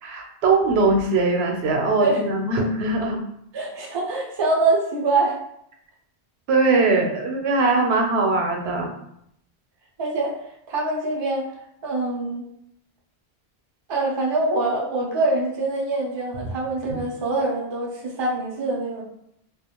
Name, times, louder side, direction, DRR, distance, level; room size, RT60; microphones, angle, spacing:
voice 1, 0.0-3.2 6.5-8.9 16.9-17.0, right 3 dB, 80° right, 2 dB, 0.8 m, -21 dB
voice 2, 3.5-5.4 10.0-10.4 10.7-11.5 11.8-12.4 13.9-19.0, right 2 dB, 40° right, -1 dB, 0.4 m, -24 dB
2.4 x 2.2 x 2.8 m, 0.74 s
omnidirectional pair, 1.0 m